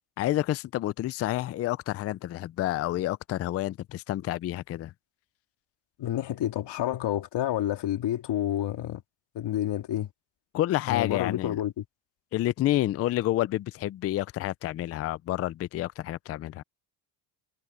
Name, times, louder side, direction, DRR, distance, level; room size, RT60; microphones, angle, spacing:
voice 1, 0.2-4.9 10.5-11.6 12.3-16.6, left 14 dB, 35° left, 0.4 m, -29 dB
voice 2, 6.0-9.0 9.3-10.1 10.9-11.8, left 12 dB, 55° left, 2.9 m, -29 dB
cardioid pair, 125°, 50 cm